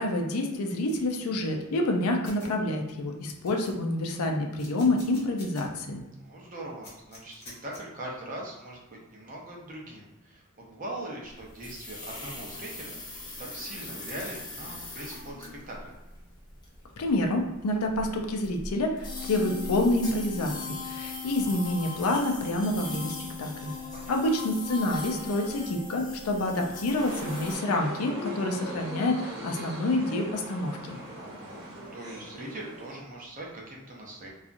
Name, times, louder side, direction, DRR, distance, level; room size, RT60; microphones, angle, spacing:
voice 1, 0.0-6.0 17.0-23.7 24.1-31.0, left 1 dB, 90° left, 3 dB, 0.4 m, -28 dB
sound 1, 0.9-1.1 1.9-2.0 2.2-2.5 3.0-3.1 3.3-4.0 4.6-5.6 6.0-6.1 6.8-7.8, left 2 dB, 45° left, 1.0 m, -48 dB
voice 2, 6.2-16.0 23.9-24.2 31.2-34.3, right 1 dB, 35° right, -2 dB, 0.5 m, -41 dB
sound 2, 11.3-27.6, left 3 dB, 20° left, 0.5 m, -39 dB
sound 3, 26.9-33.0, equal, 80° right, 0.9 m, -40 dB
2.7 x 2.3 x 2.5 m, 1.0 s
head